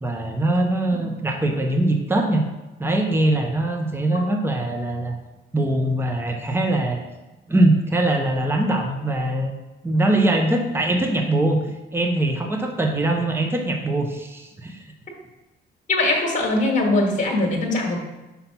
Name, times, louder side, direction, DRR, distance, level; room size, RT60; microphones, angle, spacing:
voice 1, 0.0-2.4 2.8-5.2 5.5-7.0 7.5-9.5 9.8-11.6 11.9-14.8, right 1 dB, 10° right, 3 dB, 0.9 m, -22 dB
voice 2, 15.9-18.0, left 2 dB, 40° left, 0 dB, 1.5 m, -21 dB
5.7 x 3.8 x 5.8 m, 1.1 s
cardioid pair, 90°, 20 cm